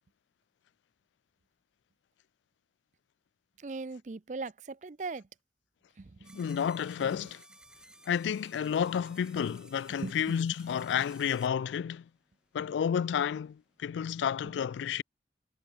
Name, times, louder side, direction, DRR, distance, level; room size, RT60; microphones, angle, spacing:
voice 1, 3.6-5.3 6.0-6.6 7.0-7.3 10.0-10.4 10.7-10.9 14.0-14.1 14.4-14.5, right 3 dB, 40° right, 0.5 m, -40 dB
sound 1, 6.2-11.5, right 1 dB, 5° right, 5.9 m, -56 dB
voice 2, 6.3-7.4 8.1-12.0 12.5-15.0, left 8 dB, 90° left, 0.3 m, -31 dB
head